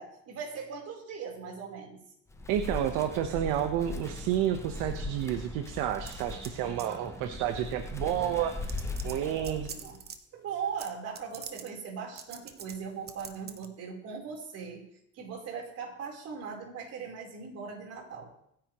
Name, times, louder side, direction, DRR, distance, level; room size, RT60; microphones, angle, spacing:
voice 1, 0.0-2.0 6.9-7.1 9.2-10.0 10.3-14.9 15.1-18.3, right 6 dB, 40° right, 0 dB, 4.1 m, -39 dB
Wind, 2.3-10.1, left 2 dB, 10° left, 1.0 m, -39 dB
voice 2, 2.5-8.8 9.0-9.7, right 10 dB, 60° right, 7 dB, 1.2 m, -30 dB
sound 1, 6.0-6.5 6.8-7.1 8.0-8.1 8.6-10.2 10.8-10.9 11.1-11.7 12.2-12.7 13.1-13.7, right 7 dB, 25° right, 1.2 m, -44 dB
24.5 x 10.0 x 3.1 m, 0.73 s
cardioid pair, 140°, 36 cm